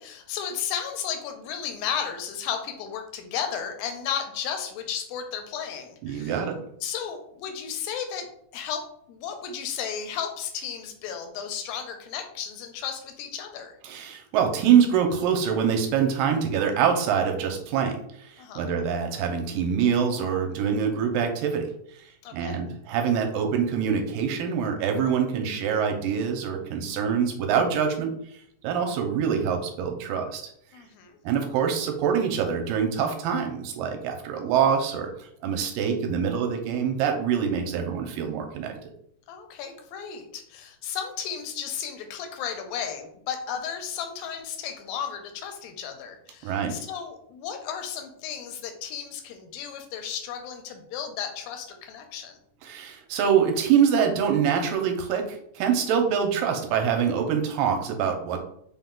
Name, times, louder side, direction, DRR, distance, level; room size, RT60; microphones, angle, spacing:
voice 1, 0.0-6.4 6.8-8.3 8.5-8.8 9.1-13.8 18.4-18.7 22.2-22.6 30.7-31.2 39.3-52.4, left 8 dB, 85° left, 5 dB, 2.4 m, -34 dB
voice 2, 6.0-6.6 13.8-21.7 22.3-28.1 28.6-30.4 31.2-38.8 46.4-46.7 52.6-58.4, right 7 dB, 80° right, 4 dB, 2.3 m, -25 dB
5.6 x 2.3 x 3.7 m, 0.70 s
omnidirectional pair, 4.1 m